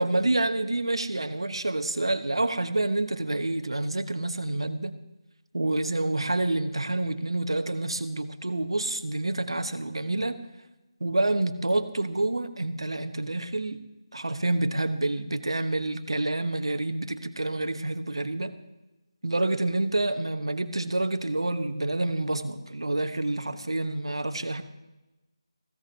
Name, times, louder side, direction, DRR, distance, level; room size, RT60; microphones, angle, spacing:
voice 1, 0.0-5.0 5.5-10.4 11.0-13.8 14.1-18.5 19.2-24.6, right 2 dB, 70° right, 8 dB, 1.2 m, -28 dB
19.5 x 15.5 x 2.8 m, 1.0 s
figure-of-eight pair, 155°, 3 cm